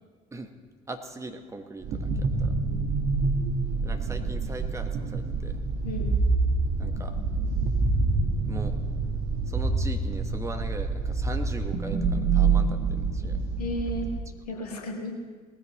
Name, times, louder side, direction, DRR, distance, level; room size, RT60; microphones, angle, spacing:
voice 1, 0.9-2.5 3.8-5.5 6.8-7.1 8.5-8.7 9.5-13.4, right 2 dB, 15° right, 5 dB, 1.3 m, -39 dB
sound 1, 1.8-14.2, right 4 dB, 50° right, 1.5 m, -27 dB
voice 2, 2.3-2.9 5.8-6.1 13.6-14.1 14.5-15.1, equal, 75° left, 2 dB, 1.7 m, -34 dB
19.0 x 14.5 x 3.1 m, 1.5 s
figure-of-eight pair, 60°, 20 cm